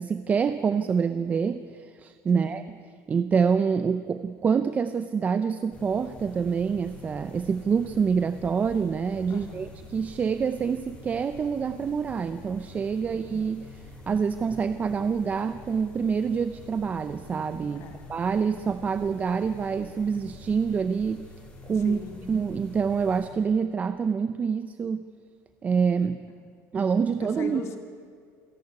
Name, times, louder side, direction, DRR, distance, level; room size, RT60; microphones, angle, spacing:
voice 1, 0.0-2.6 3.1-21.3 21.6-22.0 22.3-25.1 25.6-26.2 26.7-27.6, right 6 dB, 25° right, 11 dB, 0.6 m, -26 dB
voice 2, 2.3-2.6 9.3-9.7 13.0-13.2 17.7-18.1 21.8-22.3 26.4-26.5 27.2-27.8, left 6 dB, 45° left, 6 dB, 2.3 m, -40 dB
sound 1, 5.7-23.3, left 2 dB, 20° left, 5.9 m, -47 dB
27.5 x 11.5 x 9.7 m, 2.2 s
cardioid pair, 150°, 6 cm